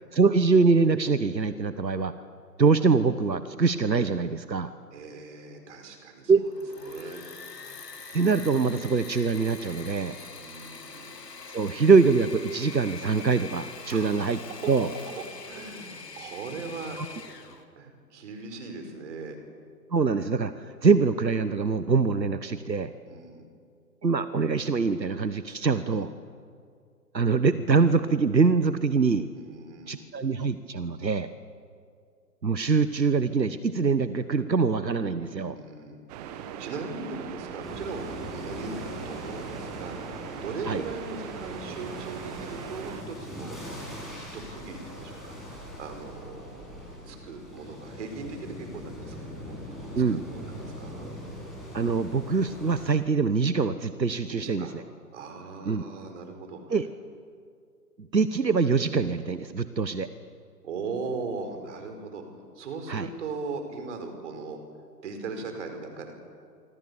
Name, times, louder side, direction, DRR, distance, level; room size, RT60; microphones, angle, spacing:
voice 1, 0.1-2.1 2.6-4.7 6.3-6.5 8.1-10.2 11.5-14.4 14.7-14.9 17.0-17.1 19.9-22.9 24.0-26.1 27.1-29.3 29.9-31.3 32.4-35.6 40.7-40.8 49.9-50.2 51.7-54.7 55.7-55.8 56.7-56.8 58.1-60.1 62.9-63.1, right 4 dB, 90° right, 13 dB, 1.3 m, -24 dB
voice 2, 4.9-6.3 6.8-7.2 10.3-11.2 13.9-14.7 15.2-17.0 17.7-19.4 23.0-23.5 25.7-26.1 29.4-30.1 35.3-49.8 50.1-51.1 54.2-54.7 55.1-56.8 60.6-62.2 62.5-64.6 65.0-66.1, right 4 dB, 45° right, 6 dB, 5.0 m, -39 dB
Engine / Mechanisms, 6.4-17.6, left 4 dB, 70° left, 3.0 m, -44 dB
sound 1, 36.1-43.0, right 8 dB, 25° right, 1.5 m, -40 dB
sound 2, 37.6-52.9, equal, ahead, 7.6 m, -41 dB
26.0 x 24.5 x 7.1 m, 2.2 s
figure-of-eight pair, 135°, 49 cm